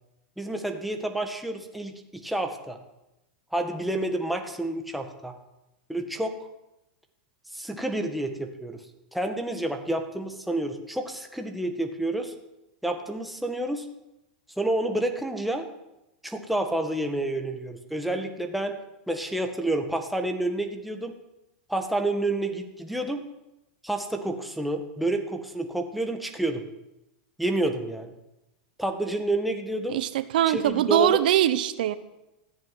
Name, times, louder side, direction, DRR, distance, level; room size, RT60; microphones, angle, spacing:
voice 1, 0.4-2.8 3.5-5.3 5.9-6.4 7.5-8.8 9.1-12.3 12.8-13.9 14.6-15.7 16.2-18.8 19.1-21.2 21.7-23.3 23.8-26.6 27.4-28.1 28.8-30.0 30.5-31.2, right 1 dB, ahead, 4 dB, 1.7 m, -29 dB
voice 2, 29.9-32.0, right 11 dB, 75° right, 13 dB, 1.1 m, -22 dB
14.5 x 10.5 x 9.7 m, 0.93 s
supercardioid pair, 145°, 5 cm